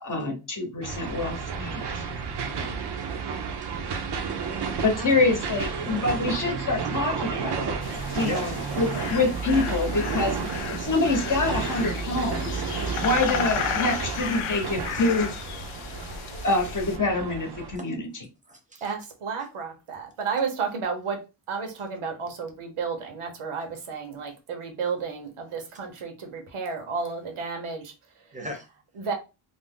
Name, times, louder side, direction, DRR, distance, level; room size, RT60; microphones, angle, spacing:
voice 1, 0.0-2.0 4.8-7.8 8.1-8.5 8.8-12.6 13.0-15.3 16.4-18.1, left 3 dB, 40° left, 0.8 m, -26 dB
sound 1, 0.8-17.8, right 5 dB, 55° right, 0.6 m, -32 dB
voice 2, 2.4-3.1 3.6-3.7 4.9-5.1 5.6-5.7 8.2-8.5 16.3-16.5 17.8-17.9 18.5-18.9 24.8-24.9 28.3-28.7, equal, 15° right, 0.7 m, -39 dB
sound 2, 7.8-17.0, left 7 dB, 80° left, 0.5 m, -34 dB
voice 3, 18.8-27.9 29.0-29.1, right 5 dB, 80° right, 0.9 m, -32 dB
2.5 x 2.0 x 3.6 m
wide cardioid pair, 110°, 49 cm